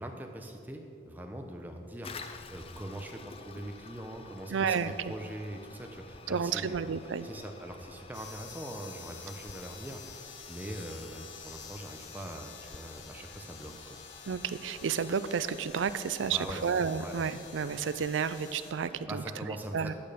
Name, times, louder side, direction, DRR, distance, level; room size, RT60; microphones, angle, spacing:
voice 1, 0.0-6.8 7.2-14.0 16.3-16.6 17.0-17.2 19.1-19.9, right 1 dB, 10° right, 3 dB, 0.8 m, -42 dB
Toilet flush, 2.0-19.0, left 4 dB, 30° left, 0.4 m, -51 dB
voice 2, 4.5-5.1 6.3-7.3 14.3-19.9, right 6 dB, 90° right, 13 dB, 0.4 m, -31 dB
sound 1, 8.1-18.7, left 7 dB, 80° left, 0.8 m, -49 dB
11.0 x 8.7 x 5.1 m, 2.7 s
head